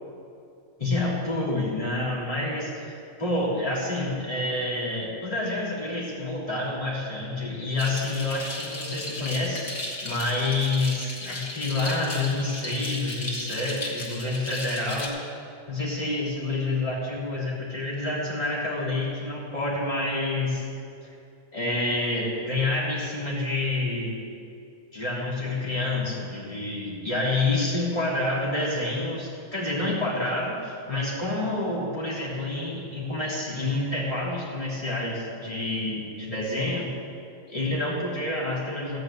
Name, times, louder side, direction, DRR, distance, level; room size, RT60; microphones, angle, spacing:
voice 1, 0.8-15.2 15.7-20.6 21.5-24.1 24.9-36.9 37.5-39.0, left 2 dB, 25° left, -6 dB, 3.2 m, -28 dB
sound 1, 7.8-15.1, left 2 dB, 85° left, 2.3 m, -36 dB
15.5 x 5.2 x 8.4 m, 2.5 s
omnidirectional pair, 1.4 m